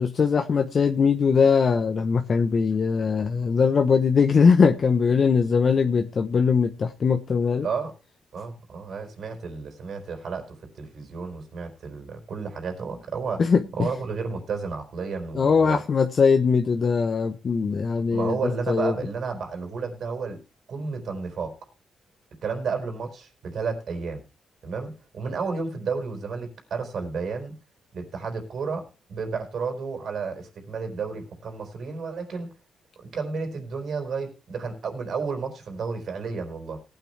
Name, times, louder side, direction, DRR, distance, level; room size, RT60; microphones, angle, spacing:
voice 1, 0.0-7.7 13.4-13.9 15.3-18.4 18.7-18.9, left 5 dB, 45° left, 1.0 m, -21 dB
voice 2, 7.6-7.9 8.3-13.4 13.8-15.8 18.1-20.4 20.7-21.5 22.4-24.2 24.6-27.5 27.9-32.5 33.0-36.8, right 5 dB, 60° right, 4.3 m, -32 dB
18.5 x 9.1 x 3.3 m
cardioid pair, 100°, 0 cm